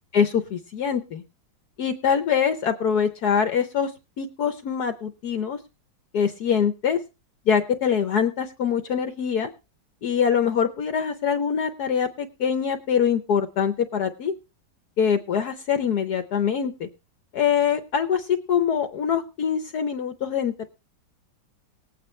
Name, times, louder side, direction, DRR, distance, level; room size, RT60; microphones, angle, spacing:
voice 1, 0.1-1.2 1.8-3.9 4.2-5.6 6.1-7.0 7.5-9.5 10.0-14.3 15.0-16.9 17.3-20.7, left 7 dB, 65° left, 7 dB, 1.4 m, -24 dB
19.5 x 8.7 x 3.3 m, 0.29 s
omnidirectional pair, 1.9 m